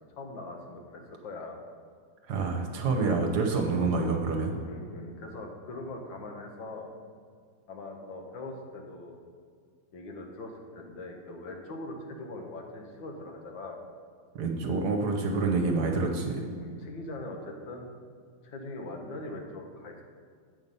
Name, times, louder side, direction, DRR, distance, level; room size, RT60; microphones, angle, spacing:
voice 1, 0.1-1.6 4.5-6.9 7.7-9.2 9.9-13.8 15.6-15.8 16.6-18.0 18.4-20.0, left 2 dB, 75° left, 2 dB, 1.8 m, -41 dB
voice 2, 2.3-4.6 14.4-16.4, right 3 dB, 60° right, 2 dB, 1.4 m, -27 dB
8.1 x 5.8 x 5.3 m, 2.1 s
omnidirectional pair, 2.1 m